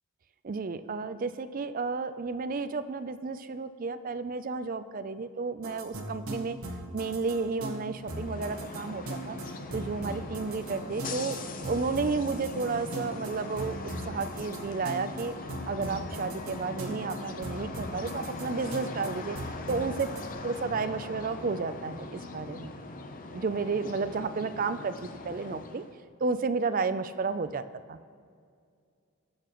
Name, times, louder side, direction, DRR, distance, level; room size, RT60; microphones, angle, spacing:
voice 1, 0.4-6.6 6.9-9.4 9.7-15.3 15.7-19.4 19.7-20.1 20.4-22.7 23.3-25.8 26.2-28.0, right 4 dB, 40° right, 11 dB, 0.4 m, -32 dB
sound 1, 5.6-20.2, right 1 dB, 75° right, 1.5 m, -40 dB
sound 2, 7.9-26.0, left 2 dB, 35° left, 0.7 m, -41 dB
19.5 x 6.9 x 3.0 m, 2.3 s
head